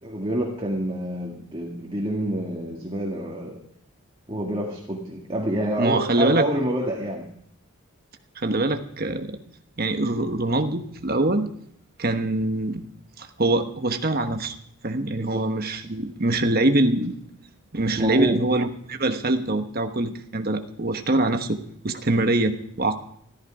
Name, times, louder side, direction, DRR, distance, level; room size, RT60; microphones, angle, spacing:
voice 1, 0.0-3.6 4.3-7.3 15.2-15.8 17.9-18.4, right 1 dB, 25° right, -1 dB, 1.7 m, -28 dB
voice 2, 5.8-6.5 8.4-9.4 9.8-11.5 12.0-12.8 13.2-14.6 14.8-17.1 17.7-21.6 21.8-23.0, right 2 dB, 40° right, 7 dB, 1.1 m, -24 dB
14.0 x 13.5 x 4.9 m, 0.69 s
head